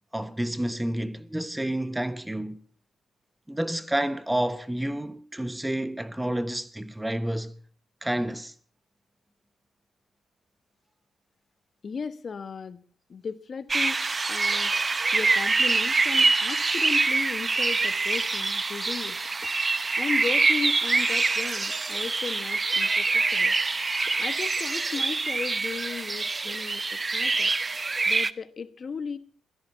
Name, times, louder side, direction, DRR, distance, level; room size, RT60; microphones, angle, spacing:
voice 1, 0.1-2.6 3.5-7.6 8.0-8.5, right 1 dB, 10° right, 1.1 m, -29 dB
voice 2, 11.8-12.8 13.1-14.0 14.3-14.8 15.1-19.2 20.0-23.6 24.1-27.5 28.0-29.2, left 5 dB, 50° left, 1.2 m, -35 dB
sound 1, 13.7-28.3, right 3 dB, 30° right, 0.8 m, -25 dB
16.5 x 13.5 x 5.6 m
cardioid pair, 70°, 0 cm